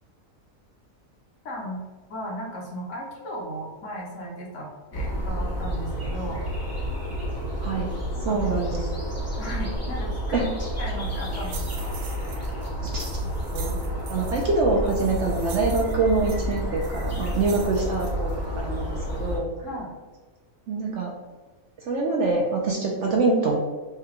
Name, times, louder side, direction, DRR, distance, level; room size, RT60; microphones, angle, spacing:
voice 1, 1.4-1.8 2.1-6.4 8.1-8.4 9.4-10.4 10.8-12.0 19.6-19.9, equal, 60° left, -2 dB, 1.1 m, -36 dB
sound 1, 4.9-19.4, equal, 15° left, 0.6 m, -30 dB
voice 2, 8.2-8.9 10.3-10.5 12.8-13.1 13.5-13.8 14.1-19.5 20.7-21.1 21.9-23.6, right 3 dB, 65° right, -1 dB, 0.7 m, -25 dB
sound 2, 11.0-18.5, right 4 dB, 85° right, 1.1 m, -43 dB
4.8 x 2.2 x 2.9 m, 1.3 s
omnidirectional pair, 1.6 m